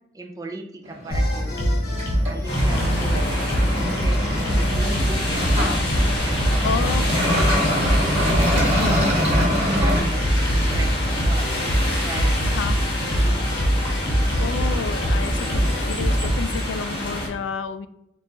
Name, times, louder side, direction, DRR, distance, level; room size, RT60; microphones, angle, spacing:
voice 1, 0.1-1.8 2.2-3.4 3.7-4.2 4.6-5.7 5.9-9.1 9.4-10.5 10.7-13.0, right 2 dB, 20° right, 2 dB, 0.4 m, -37 dB
sound 1, 0.8-10.0, equal, 35° right, 1.1 m, -26 dB
sound 2, 1.1-16.4, equal, 55° left, 1.0 m, -23 dB
sound 3, 2.5-17.3, equal, 30° left, 1.3 m, -27 dB
voice 2, 5.4-5.8 6.6-7.0 8.7-9.1 12.4-12.8 14.4-17.9, left 6 dB, 85° left, 12 dB, 0.3 m, -30 dB
4.4 x 2.4 x 3.8 m, 0.83 s
head